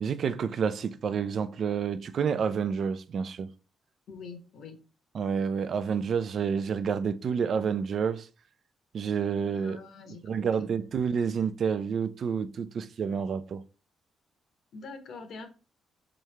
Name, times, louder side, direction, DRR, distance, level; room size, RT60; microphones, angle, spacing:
voice 1, 0.0-3.5 5.1-8.3 8.9-9.8 10.2-13.6, right 6 dB, 55° right, 0.4 m, -29 dB
voice 2, 4.1-4.8 9.5-10.4 14.7-15.5, left 4 dB, 65° left, 0.9 m, -44 dB
3.6 x 3.1 x 3.2 m
cardioid pair, 75°, 0 cm